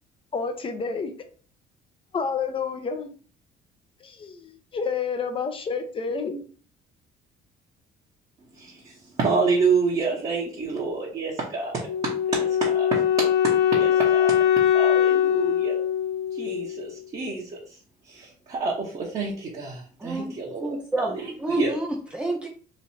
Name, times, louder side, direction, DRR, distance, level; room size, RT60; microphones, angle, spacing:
voice 1, 0.3-1.1 2.1-3.1 4.0-6.5, left 5 dB, 30° left, 7 dB, 0.7 m, -29 dB
voice 2, 8.6-13.0 13.4-14.4 14.7-15.8 16.3-17.5 18.1-20.8 21.0-21.7, right 4 dB, 35° right, -4 dB, 1.1 m, -28 dB
Wind instrument woodwind instrument, 11.9-16.9, left 9 dB, 70° left, 0.7 m, -22 dB
voice 3, 20.0-20.3 20.6-22.5, right 1 dB, 5° right, -2 dB, 0.5 m, -28 dB
3.2 x 2.6 x 4.2 m, 0.41 s
cardioid pair, 110°, 17 cm